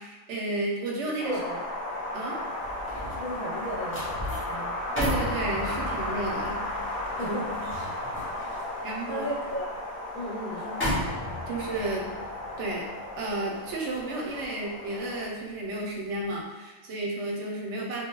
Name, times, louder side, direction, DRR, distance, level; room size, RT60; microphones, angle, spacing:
voice 1, 0.0-1.4 2.1-2.4 5.0-6.6 7.2-7.4 8.8-9.3 11.5-12.1 12.6-12.8 13.2-18.1, right 2 dB, 65° right, -2 dB, 0.8 m, -32 dB
voice 2, 1.0-1.6 3.1-4.8 7.2-7.7 8.7-9.7 10.1-10.8, equal, 70° left, -5 dB, 1.1 m, -35 dB
Wind, 1.2-15.3, left 1 dB, 45° left, 0.9 m, -35 dB
sound 1, 2.4-15.7 16.1-16.4, left 1 dB, 15° left, 0.5 m, -37 dB
2.3 x 2.2 x 2.9 m, 1.2 s
omnidirectional pair, 1.4 m